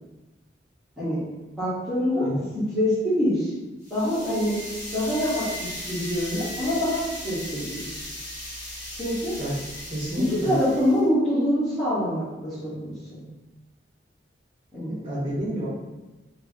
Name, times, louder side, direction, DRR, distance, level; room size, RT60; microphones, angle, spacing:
voice 1, 1.6-2.3 2.5-3.5 3.9-4.6 4.9-8.0 8.9-9.3 10.2-13.2 14.7-15.0, equal, ahead, -15 dB, 1.1 m, -25 dB
sound 1, 3.8-11.0, left 1 dB, 40° left, 1.4 m, -37 dB
voice 2, 9.9-10.5 15.0-15.7, equal, 30° right, -9 dB, 0.9 m, -29 dB
2.9 x 2.6 x 3.7 m, 1.1 s
head